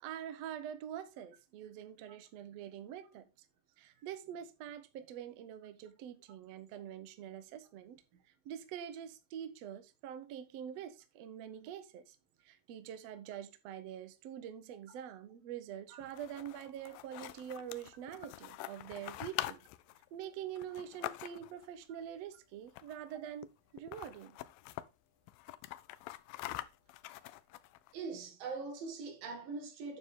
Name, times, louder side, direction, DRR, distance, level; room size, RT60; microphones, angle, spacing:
voice 1, 0.0-3.3 3.8-8.0 8.4-12.2 12.4-19.7 20.1-24.4, right 9 dB, 65° right, 1.7 m, -45 dB
sound 1, 16.0-21.7 22.7-23.1 23.4-23.5 23.8-24.9 25.3-27.9, left 16 dB, 90° left, 2.4 m, -45 dB
voice 2, 27.9-30.0, right 4 dB, 85° right, 3.5 m, -42 dB
9.3 x 6.8 x 3.6 m
omnidirectional pair, 3.9 m